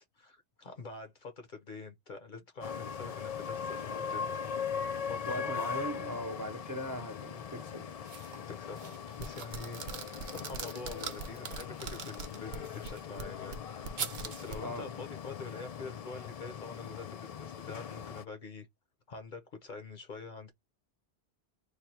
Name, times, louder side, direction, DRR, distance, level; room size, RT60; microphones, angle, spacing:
voice 1, 0.0-4.2 5.1-5.9 8.5-9.9 10.3-13.9 14.2-18.7 19.1-20.5, left 4 dB, 50° left, 0.9 m, -45 dB
sound 1, 2.6-18.2, left 7 dB, 65° left, 0.3 m, -40 dB
voice 2, 5.3-8.0 14.6-14.9, left 1 dB, 20° right, 0.6 m, -39 dB
sound 2, 8.1-8.4 8.8-13.0 14.0-14.6, right 7 dB, 55° right, 0.8 m, -43 dB
sound 3, 9.2-14.6, right 6 dB, 85° right, 0.9 m, -42 dB
3.3 x 2.3 x 4.2 m
omnidirectional pair, 1.1 m